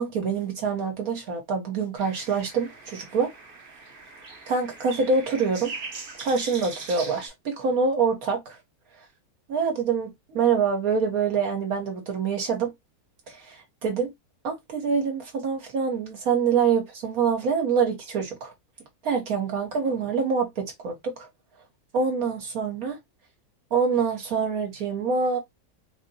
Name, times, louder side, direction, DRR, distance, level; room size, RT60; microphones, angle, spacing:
voice 1, 0.0-3.3 4.5-5.7 6.2-8.6 9.0-9.1 9.5-12.7 13.3-14.1 14.4-18.5 19.0-21.3 21.9-23.0 23.7-25.4, right 5 dB, 70° right, 1.2 m, -25 dB
sound 1, 2.0-7.3, right 4 dB, 40° right, 0.9 m, -41 dB
4.3 x 2.6 x 2.6 m
omnidirectional pair, 1.6 m